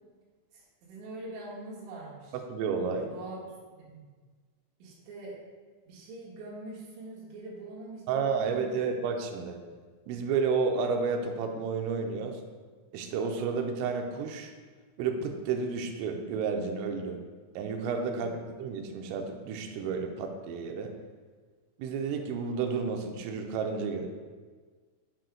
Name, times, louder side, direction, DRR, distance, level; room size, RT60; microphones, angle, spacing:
voice 1, 0.5-2.4 3.0-4.1 4.8-5.4 5.9-8.8, right 2 dB, 65° right, -5 dB, 3.7 m, -44 dB
voice 2, 2.5-3.1 8.1-9.6 10.1-12.4 12.9-14.5 15.0-17.2 17.6-20.9 21.8-24.1, right 5 dB, 85° right, 4 dB, 3.2 m, -31 dB
9.2 x 7.6 x 2.3 m, 1.5 s
omnidirectional pair, 5.9 m